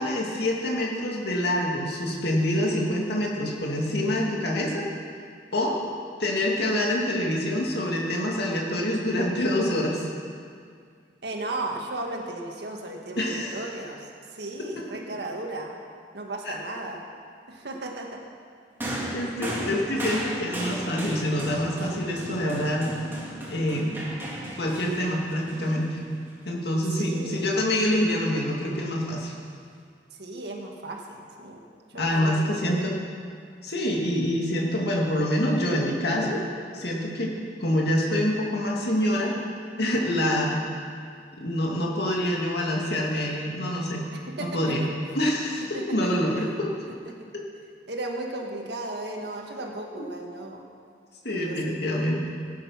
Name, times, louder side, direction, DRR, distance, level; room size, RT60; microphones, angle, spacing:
voice 1, 0.0-4.9 5.5-5.8 6.2-10.0 13.2-13.6 16.5-16.6 19.1-23.0 23.5-24.0 24.6-26.0 26.4-29.3 32.0-32.9 33.6-36.4 36.7-37.3 37.6-39.4 39.8-40.7 41.4-44.0 44.4-44.8 45.1-46.7 49.9-50.1 51.2-52.2, left 1 dB, 65° left, -2 dB, 2.3 m, -26 dB
voice 2, 11.2-15.7 16.1-17.0 17.5-18.2 26.9-27.6 30.1-31.6 31.9-32.9 44.1-44.9 45.7-46.2 47.1-47.2 47.9-50.7 51.3-51.9, right 2 dB, 65° right, 1 dB, 1.8 m, -35 dB
sound 1, 18.8-26.3 27.3-27.4, equal, 15° right, 3.1 m, -35 dB
17.5 x 9.8 x 5.9 m, 2.2 s
head